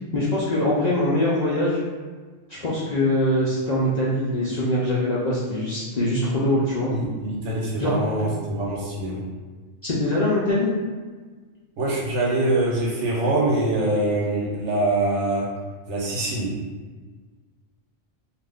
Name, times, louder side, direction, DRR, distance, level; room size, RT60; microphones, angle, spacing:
voice 1, 0.1-1.8 2.6-6.9 7.8-7.9 8.2-8.3 9.8-10.7, left 1 dB, 55° left, -7 dB, 0.5 m, -23 dB
voice 2, 6.9-9.2 11.8-15.5 15.9-16.5, right 2 dB, 75° right, -4 dB, 1.1 m, -24 dB
2.5 x 2.5 x 3.4 m, 1.4 s
omnidirectional pair, 1.2 m